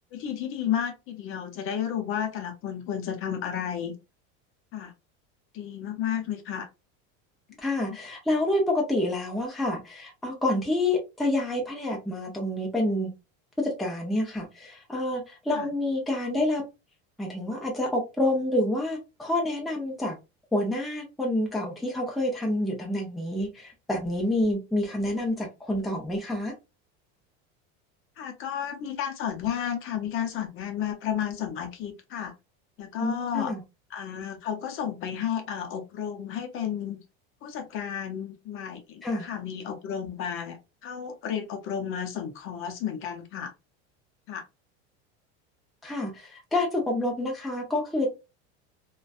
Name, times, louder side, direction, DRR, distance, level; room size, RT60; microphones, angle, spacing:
voice 1, 0.1-3.9 4.7-4.9 5.5-6.7 7.9-8.0 15.5-15.7 28.2-32.3 32.8-33.5 33.9-37.0 37.4-43.5 44.3-44.4, left 9 dB, 40° left, 0.6 m, -32 dB
voice 2, 7.6-13.1 13.6-16.6 17.2-20.2 20.5-26.5 33.0-33.6 39.0-39.2 45.8-48.1, left 1 dB, ahead, 0.5 m, -28 dB
2.5 x 2.2 x 2.3 m
cardioid pair, 140°, 31 cm